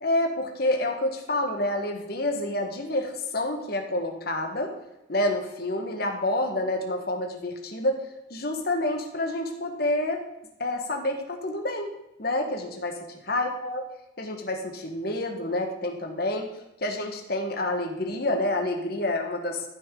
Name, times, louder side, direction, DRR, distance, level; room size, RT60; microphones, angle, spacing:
voice 1, 0.0-4.7 5.1-8.0 8.3-10.2 10.6-11.9 12.2-13.0 13.2-13.8 14.2-16.5 16.8-19.6, left 1 dB, 50° left, 4 dB, 1.4 m, -28 dB
14.0 x 6.2 x 3.9 m, 0.93 s
head